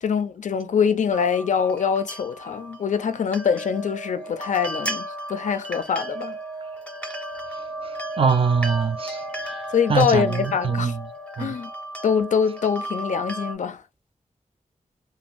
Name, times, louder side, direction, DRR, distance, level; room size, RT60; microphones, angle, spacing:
voice 1, 0.0-6.4 9.7-10.9 11.4-11.7 12.0-13.8, left 7 dB, 65° left, 0.4 m, -24 dB
sound 1, 1.1-13.5, right 1 dB, 10° left, 0.6 m, -35 dB
voice 2, 7.8-11.1 11.4-11.5, right 5 dB, 45° right, 0.4 m, -24 dB
2.5 x 2.4 x 3.0 m
wide cardioid pair, 85°, 13 cm